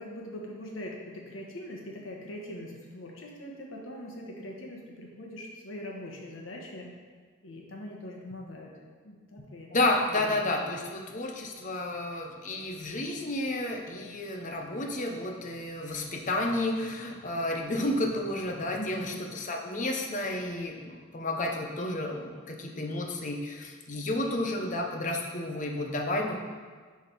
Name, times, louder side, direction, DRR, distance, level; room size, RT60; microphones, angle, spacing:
voice 1, 0.0-6.9 7.4-8.7 9.0-9.7 18.8-19.2, left 1 dB, 90° left, -1 dB, 1.3 m, -42 dB
voice 2, 9.7-26.4, left 1 dB, 40° left, 2 dB, 0.8 m, -31 dB
9.7 x 3.6 x 4.6 m, 1.5 s
head